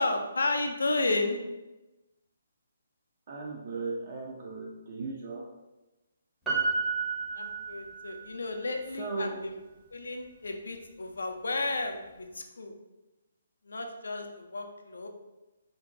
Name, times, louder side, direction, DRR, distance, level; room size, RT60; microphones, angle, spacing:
voice 1, 0.0-1.4 7.3-9.6 9.9-12.7 13.7-15.1, left 2 dB, 75° left, 4 dB, 0.3 m, -32 dB
voice 2, 3.3-5.5 9.0-9.4, right 3 dB, 50° right, -3 dB, 0.4 m, -36 dB
Piano, 6.5-8.2 8.6-8.7, right 4 dB, ahead, 0.6 m, -31 dB
2.5 x 2.1 x 2.4 m, 1.0 s
figure-of-eight pair, 140°, 0 cm